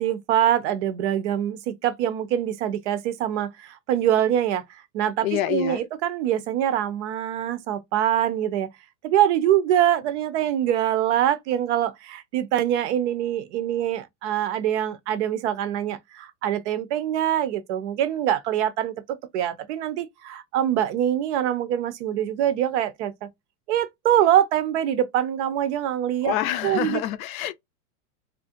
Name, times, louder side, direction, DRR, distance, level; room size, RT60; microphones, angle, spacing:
voice 1, 0.0-8.7 9.0-23.3 23.7-26.3 26.6-27.0, right 11 dB, 50° right, 0.5 m, -24 dB
voice 2, 5.2-5.8 26.2-27.5, left 12 dB, 65° left, 0.5 m, -26 dB
2.4 x 2.1 x 2.5 m
supercardioid pair, 145°, 45 cm